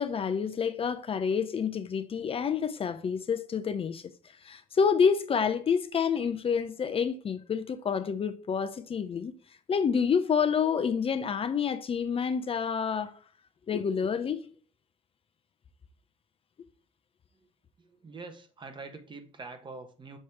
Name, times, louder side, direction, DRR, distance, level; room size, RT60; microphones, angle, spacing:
voice 1, 0.0-4.1 4.4-9.3 9.7-13.1 13.7-14.4, left 6 dB, 40° left, 0.6 m, -28 dB
voice 2, 17.8-20.2, right 3 dB, 35° right, 1.2 m, -44 dB
6.6 x 3.1 x 5.6 m
supercardioid pair, 75°, 15 cm